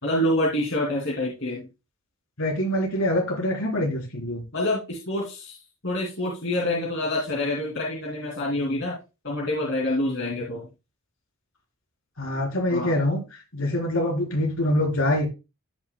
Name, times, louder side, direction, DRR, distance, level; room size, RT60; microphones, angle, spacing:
voice 1, 0.0-1.7 4.5-5.6 5.8-8.9 9.2-10.7 12.7-13.0, left 1 dB, 55° left, -3 dB, 2.7 m, -27 dB
voice 2, 2.4-4.4 12.2-13.2 13.5-15.3, left 1 dB, 70° left, 1 dB, 3.9 m, -24 dB
15.0 x 6.1 x 2.2 m, 0.27 s
head